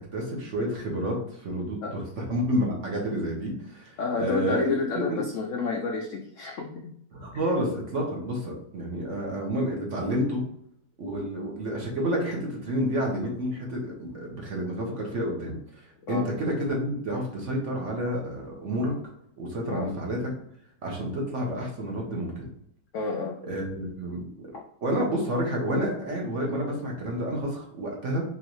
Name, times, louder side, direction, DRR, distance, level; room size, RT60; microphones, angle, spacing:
voice 1, 0.1-5.2 7.1-10.4 11.0-18.9 19.4-20.3 20.8-22.5 23.4-24.2 24.8-28.2, equal, 50° right, -1 dB, 1.1 m, -29 dB
voice 2, 4.0-6.9 16.1-16.3 19.7-19.9 22.9-23.4, left 4 dB, 85° left, 1 dB, 0.6 m, -30 dB
3.9 x 3.1 x 3.0 m, 0.70 s
omnidirectional pair, 1.9 m